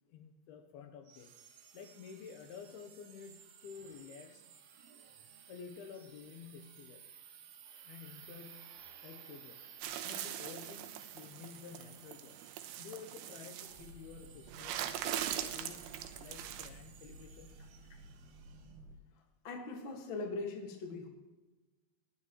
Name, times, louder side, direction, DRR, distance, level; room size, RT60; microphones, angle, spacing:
voice 1, 0.1-1.4 1.7-4.4 5.5-7.0 7.8-9.6 10.0-12.4 12.8-17.6 17.9-18.0, left 6 dB, 75° left, 5 dB, 2.5 m, -51 dB
sound 1, 1.1-18.7, right 8 dB, 65° right, 2.7 m, -57 dB
sound 2, 9.8-13.9 14.5-16.7, right 11 dB, 80° right, 2.9 m, -41 dB
sound 3, 13.7-18.9, right 2 dB, 20° left, 3.1 m, -55 dB
voice 2, 19.4-21.1, left 3 dB, 50° left, 2 dB, 1.5 m, -40 dB
19.5 x 11.0 x 3.1 m, 1.2 s
omnidirectional pair, 5.0 m